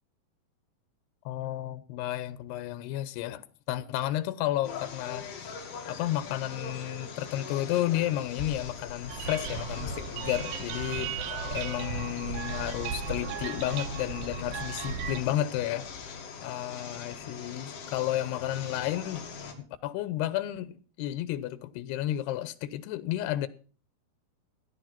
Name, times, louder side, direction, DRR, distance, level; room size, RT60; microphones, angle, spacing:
voice 1, 1.3-5.6 5.9-11.1 11.5-19.3 19.8-23.5, left 13 dB, 90° left, 3.0 m, -32 dB
sound 1, 4.6-19.5, left 5 dB, 55° left, 3.8 m, -41 dB
sound 2, 9.1-15.2, right 7 dB, 65° right, 2.2 m, -36 dB
15.5 x 11.0 x 5.8 m
omnidirectional pair, 4.6 m